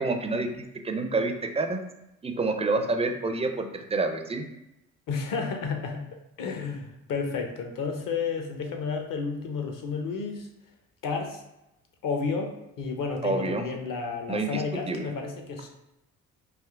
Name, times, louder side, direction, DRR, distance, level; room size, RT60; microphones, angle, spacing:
voice 1, 0.0-1.8 2.2-4.5 13.2-13.6 14.3-15.1, right 3 dB, 15° right, 5 dB, 0.4 m, -28 dB
voice 2, 5.1-6.0 6.4-10.5 11.0-11.4 12.0-15.7, left 5 dB, 55° left, 4 dB, 0.8 m, -31 dB
3.4 x 2.6 x 2.4 m, 0.90 s
hypercardioid pair, 55°, 40 cm